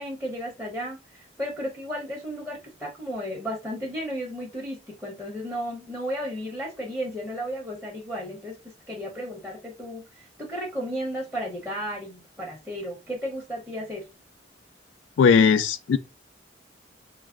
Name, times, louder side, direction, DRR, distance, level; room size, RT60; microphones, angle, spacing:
voice 1, 0.0-14.0, equal, ahead, 0.9 m, -34 dB
voice 2, 15.2-16.0, left 6 dB, 85° left, 0.3 m, -18 dB
3.3 x 2.0 x 3.6 m
head